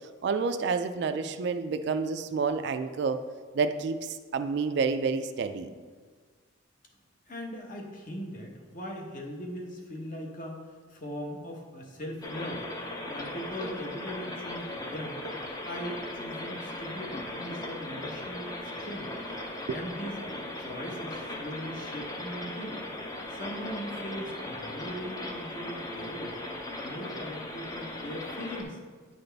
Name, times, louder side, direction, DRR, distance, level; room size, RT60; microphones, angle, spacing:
voice 1, 0.2-3.2 3.5-5.7 19.7-19.8, right 5 dB, 55° right, 9 dB, 0.3 m, -29 dB
voice 2, 7.3-12.6 13.1-15.2 15.6-19.1 19.7-22.8 23.3-26.4 26.8-28.8, equal, 40° left, 1 dB, 0.9 m, -40 dB
sound 1, 12.2-28.6, left 1 dB, 20° left, 0.6 m, -38 dB
9.2 x 4.0 x 3.3 m, 1.5 s
head